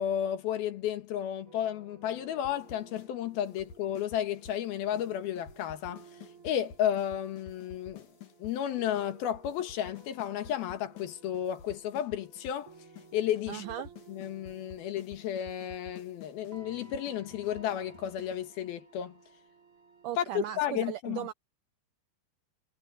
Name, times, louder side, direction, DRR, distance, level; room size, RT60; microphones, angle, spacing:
voice 1, 0.0-6.1 6.4-8.1 8.4-12.7 13.1-13.6 14.1-19.2 20.2-21.3, left 10 dB, 75° left, 3.4 m, -33 dB
sound 1, 1.4-20.1, right 4 dB, 35° right, 4.9 m, -56 dB
sound 2, 2.4-3.1 3.3-4.6 5.0-5.1 5.4-8.6 9.0-9.1 9.3-11.1 11.3-12.6 13.0-13.1 13.4-18.4, left 6 dB, 55° left, 3.4 m, -50 dB
voice 2, 13.5-13.9 20.0-21.3, right 13 dB, 80° right, 1.8 m, -37 dB
omnidirectional pair, 4.4 m